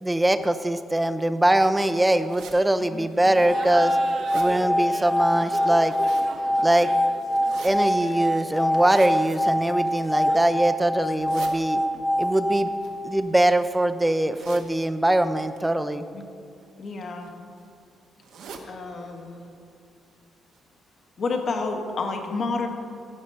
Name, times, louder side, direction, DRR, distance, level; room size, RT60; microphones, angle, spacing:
voice 1, 0.0-4.0 4.3-5.9 6.6-6.9 7.6-11.8 12.2-12.7 13.0-16.1, right 1 dB, 10° right, 10 dB, 0.5 m, -22 dB
sound 1, 2.3-2.6 3.2-3.3 3.7-4.5 5.6-6.3 7.3-7.7 8.7-9.1 9.9-10.3 11.0-11.5 12.6-13.6 14.3-14.7 15.4-15.6 16.6-16.9 17.2-17.3 17.6-17.7 18.2-18.7 19.1-19.2 19.5-19.6 20.1-20.2 20.5-20.6, right 6 dB, 80° right, 1.1 m, -43 dB
Laughter, 3.2-10.6, right 4 dB, 60° right, 0.9 m, -40 dB
sound 2, 3.4-13.5, equal, 20° left, 0.7 m, -25 dB
voice 2, 16.8-17.3 18.7-19.4 21.2-22.7, left 3 dB, 50° left, 3 dB, 1.4 m, -30 dB
15.0 x 5.2 x 5.5 m, 2.5 s
cardioid pair, 90°, 0 cm